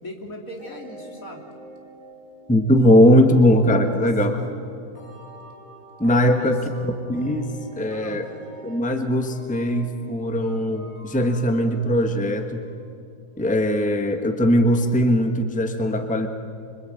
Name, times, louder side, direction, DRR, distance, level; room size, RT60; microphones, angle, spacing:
voice 1, 0.0-1.4 4.0-4.1 6.3-6.9 7.9-8.2, left 1 dB, 60° left, 2 dB, 3.5 m, -38 dB
sound 1, 0.6-13.0, right 1 dB, 20° left, 7.6 m, -45 dB
voice 2, 2.5-4.3 6.0-7.5 7.8-8.2 8.6-12.6 13.4-16.3, equal, 5° left, 6 dB, 1.4 m, -20 dB
26.0 x 24.5 x 9.0 m, 2.5 s
omnidirectional pair, 1.6 m